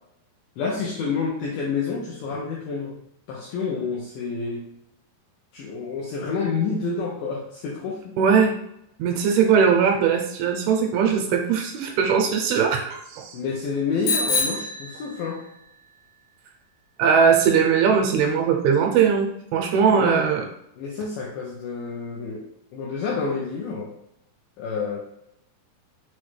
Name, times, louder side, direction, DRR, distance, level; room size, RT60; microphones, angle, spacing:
voice 1, 0.6-3.0 3.3-4.7 5.5-8.1 13.3-15.4 19.9-20.3 20.8-23.9 24.6-25.0, left 5 dB, 85° left, -3 dB, 2.0 m, -29 dB
voice 2, 8.2-8.6 9.0-13.4 17.0-20.4, right 6 dB, 80° right, 2 dB, 2.4 m, -20 dB
Bicycle bell, 14.0-15.6, left 3 dB, 65° left, 1.8 m, -26 dB
6.1 x 2.1 x 3.2 m, 0.78 s
omnidirectional pair, 4.6 m